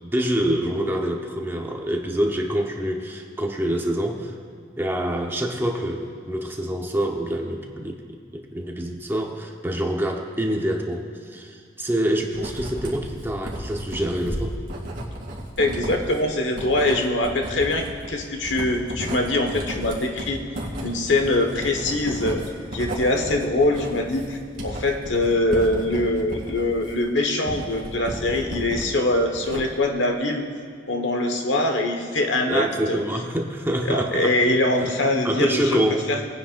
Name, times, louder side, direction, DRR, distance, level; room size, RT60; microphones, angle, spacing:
voice 1, 0.0-4.3 4.8-8.0 8.3-14.6 32.5-34.4 34.8-34.9 35.2-36.1, right 1 dB, 10° right, 1 dB, 1.0 m, -26 dB
Writing, 12.3-28.9 29.2-29.9, equal, 50° right, 2.8 m, -34 dB
voice 2, 15.6-20.4 20.8-22.4 22.7-30.4 30.9-33.0 33.8-35.8 36.1-36.2, left 1 dB, 90° left, 4 dB, 1.4 m, -23 dB
21.5 x 9.8 x 2.6 m, 2.3 s
head